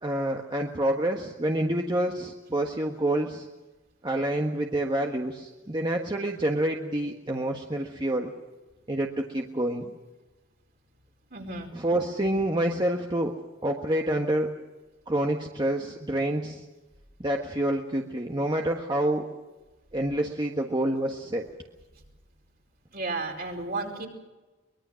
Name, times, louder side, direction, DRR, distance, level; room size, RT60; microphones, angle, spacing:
voice 1, 0.0-3.5 4.0-8.3 8.9-9.9 11.7-13.3 13.6-14.5 15.1-16.6 17.2-19.3 19.9-21.5, right 1 dB, 25° right, 1 dB, 1.4 m, -27 dB
voice 2, 11.3-11.7 22.9-24.1, right 3 dB, 50° right, 2 dB, 4.8 m, -33 dB
23.5 x 21.5 x 6.4 m, 1.1 s
head